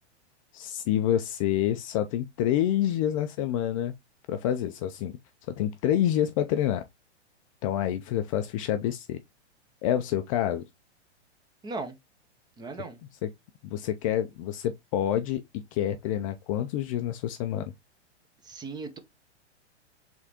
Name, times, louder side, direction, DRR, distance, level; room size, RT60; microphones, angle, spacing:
voice 1, 0.5-3.9 4.3-5.2 5.6-6.8 7.6-9.2 9.8-10.6 13.2-13.3 13.6-17.7, left 11 dB, 30° left, 0.4 m, -27 dB
voice 2, 11.6-12.0 12.6-13.0 18.4-19.0, right 3 dB, 10° right, 0.6 m, -37 dB
4.7 x 3.5 x 2.8 m
hypercardioid pair, 125°, 35 cm